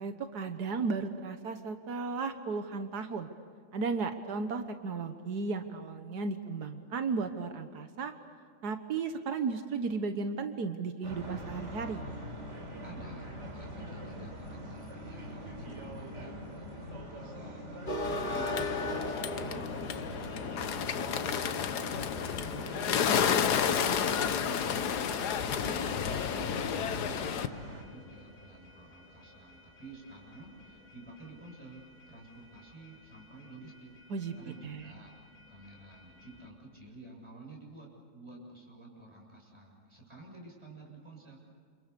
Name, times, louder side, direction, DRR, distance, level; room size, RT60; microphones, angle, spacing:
voice 1, 0.0-3.3 3.7-8.1 8.6-12.1 34.1-34.3 34.6-34.9, right 4 dB, 85° right, 8 dB, 1.8 m, -34 dB
sound 1, 11.0-27.8, equal, 45° right, 4.0 m, -44 dB
voice 2, 12.8-23.2 23.6-34.0 34.4-35.1 35.5-41.4, right 2 dB, 15° right, -1 dB, 7.1 m, -51 dB
sound 2, 17.8-36.5, left 2 dB, 70° left, 4.4 m, -43 dB
Bird, 18.0-27.5, left 8 dB, 90° left, 1.6 m, -31 dB
29.0 x 28.0 x 6.9 m, 2.1 s
omnidirectional pair, 1.7 m